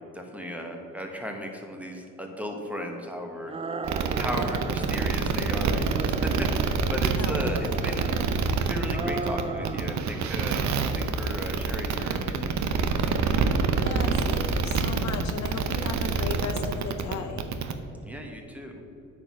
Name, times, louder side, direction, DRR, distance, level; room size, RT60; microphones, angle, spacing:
voice 1, 0.1-3.6 4.2-8.2 8.6-13.2 18.0-18.8, equal, 5° right, 2 dB, 1.2 m, -36 dB
sound 1, 3.5-5.2 5.6-7.0 7.4-8.5 8.9-10.1 10.3-11.1, right 4 dB, 20° right, 0.4 m, -36 dB
sound 2, 3.8-17.7, right 5 dB, 70° right, 0.8 m, -26 dB
voice 2, 7.2-7.8 13.8-17.4, left 5 dB, 65° left, 5 dB, 0.9 m, -36 dB
8.8 x 4.6 x 6.2 m, 2.7 s
cardioid pair, 90°, 30 cm